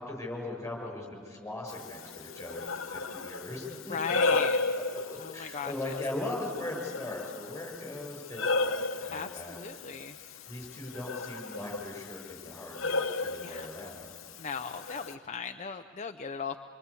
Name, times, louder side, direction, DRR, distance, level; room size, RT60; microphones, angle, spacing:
voice 1, 0.0-4.3 4.7-4.8 5.1-9.9 10.5-14.1, left 2 dB, 15° left, 1 dB, 6.6 m, -39 dB
Breathing, 1.7-15.1, left 3 dB, 70° left, 0.9 m, -35 dB
voice 2, 3.9-4.6 5.2-6.0 9.1-10.2 13.4-13.9 14.4-16.6, left 6 dB, 35° left, 6 dB, 0.6 m, -38 dB
26.0 x 23.5 x 8.4 m, 2.1 s
head